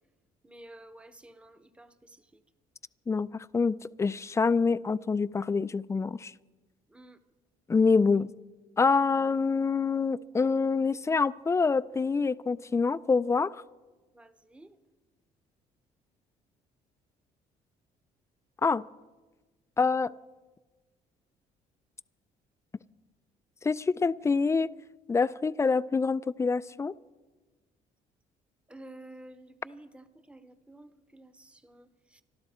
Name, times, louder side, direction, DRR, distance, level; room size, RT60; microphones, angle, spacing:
voice 1, 0.4-2.4 6.9-7.2 14.1-14.8 28.7-32.2, right 1 dB, 5° right, 0.9 m, -51 dB
voice 2, 3.1-6.3 7.7-8.3 8.8-13.5 18.6-18.8 19.8-20.1 23.6-24.7 25.1-27.0, left 4 dB, 20° left, 0.4 m, -26 dB
25.0 x 12.5 x 4.3 m
cardioid pair, 110°, 16 cm